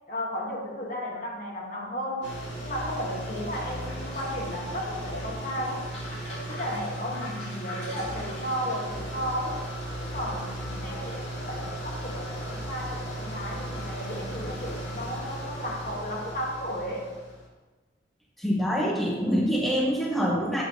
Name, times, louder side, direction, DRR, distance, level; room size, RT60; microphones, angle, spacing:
voice 1, 0.1-5.9 6.3-9.6 10.0-17.1, equal, 45° left, -2 dB, 1.3 m, -34 dB
sound 1, 2.2-17.5, right 1 dB, 75° left, 2.2 m, -36 dB
voice 2, 18.4-20.6, equal, ahead, -5 dB, 0.9 m, -25 dB
8.1 x 3.3 x 6.3 m, 1.3 s
head